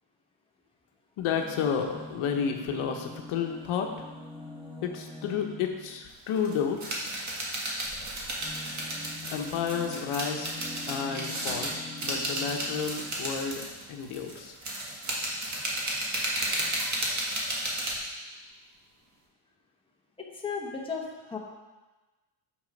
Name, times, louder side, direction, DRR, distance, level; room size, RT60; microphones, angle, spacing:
voice 1, 1.2-4.1 4.8-6.8 9.3-10.6 10.9-13.6 13.9-14.6, left 7 dB, 75° left, 3 dB, 1.0 m, -31 dB
sound 1, 1.2-6.1 7.7-13.2 14.1-14.2 14.4-14.5, left 2 dB, 10° right, 1.5 m, -44 dB
sound 2, 6.1-6.2 6.4-17.9, right 1 dB, 35° right, 1.7 m, -33 dB
voice 2, 20.3-21.4, left 5 dB, 10° left, -2 dB, 1.2 m, -34 dB
6.4 x 6.2 x 5.2 m, 1.2 s
cardioid pair, 130°, 50 cm